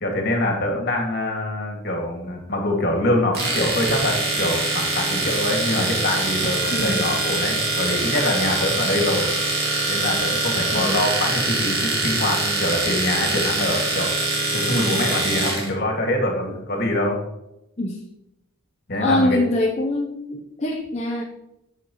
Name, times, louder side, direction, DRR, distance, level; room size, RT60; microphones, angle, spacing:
voice 1, 0.0-9.3 9.9-14.1 14.5-17.2 18.9-19.4, left 1 dB, 50° left, 1 dB, 2.1 m, -24 dB
Domestic sounds home sounds, 3.3-15.7, right 2 dB, 50° right, 2.3 m, -24 dB
voice 2, 6.7-7.1 10.7-11.0 17.8-18.0 19.0-21.2, left 1 dB, 30° left, -1 dB, 0.8 m, -24 dB
11.0 x 7.3 x 3.1 m, 0.86 s
head